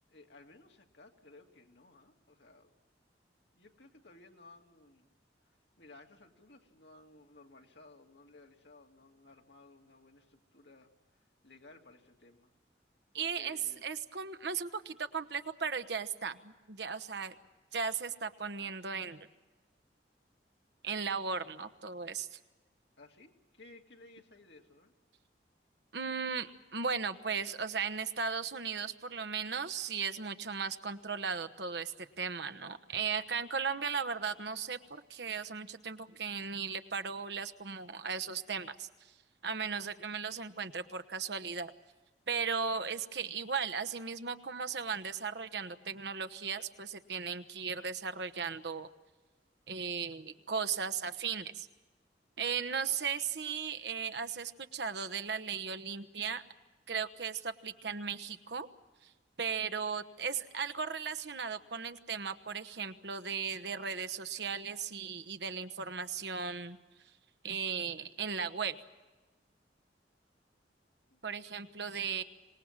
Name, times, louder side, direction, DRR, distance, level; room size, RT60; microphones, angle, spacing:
voice 1, 0.1-2.7 3.5-5.1 5.5-12.5 13.1-13.8 23.0-24.9 71.1-71.2, left 2 dB, 70° left, 2 dB, 2.4 m, -58 dB
voice 2, 13.1-17.3 17.7-19.3 20.8-22.4 25.9-39.1 39.4-41.7 42.3-48.9 49.7-51.7 52.4-56.5 56.9-58.7 59.0-59.1 59.4-66.8 67.4-68.8 71.2-72.2, right 6 dB, 65° right, 11 dB, 1.1 m, -36 dB
26.0 x 19.5 x 7.4 m, 1.2 s
head